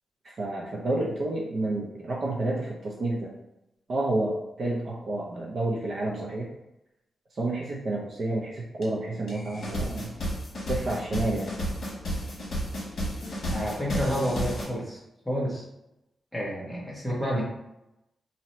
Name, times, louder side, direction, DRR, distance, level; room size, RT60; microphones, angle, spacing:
voice 1, 0.2-3.3 3.9-6.5 7.3-10.1 10.7-11.5, right 2 dB, 40° right, -2 dB, 0.6 m, -30 dB
sound 1, 8.8-8.9 9.3-14.7, equal, 45° left, 1.3 m, -32 dB
voice 2, 13.5-15.0 15.2-15.6 16.3-17.4, equal, 5° left, -5 dB, 1.0 m, -29 dB
2.9 x 2.8 x 4.2 m, 0.89 s
wide cardioid pair, 170°, 0 cm